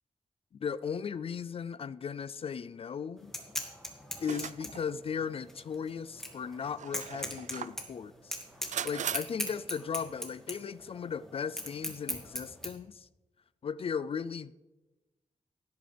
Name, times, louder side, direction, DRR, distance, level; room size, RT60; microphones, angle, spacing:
voice 1, 0.6-3.3 4.2-8.4 8.7-13.1 13.6-14.5, left 6 dB, 50° left, 17 dB, 0.4 m, -37 dB
sound 1, 3.2-12.7, equal, 5° left, 2.2 m, -40 dB
sound 2, 4.2-4.9 5.6-5.7 6.6-7.9 8.7-9.2, right 9 dB, 75° right, 0.4 m, -38 dB
17.5 x 11.5 x 3.4 m, 1.1 s
wide cardioid pair, 130°, 13 cm